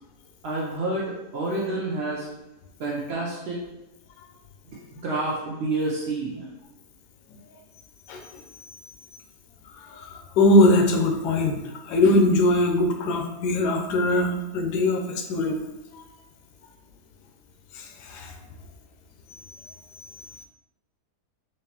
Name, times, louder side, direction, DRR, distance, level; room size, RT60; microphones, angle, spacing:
voice 1, 0.4-2.3 2.8-3.6 4.9-6.5, right 2 dB, 70° right, -4 dB, 0.6 m, -28 dB
voice 2, 9.9-15.6 15.9-16.0 17.8-18.3, left 1 dB, 85° left, 3 dB, 1.2 m, -21 dB
3.9 x 3.2 x 2.8 m, 1.0 s
omnidirectional pair, 1.7 m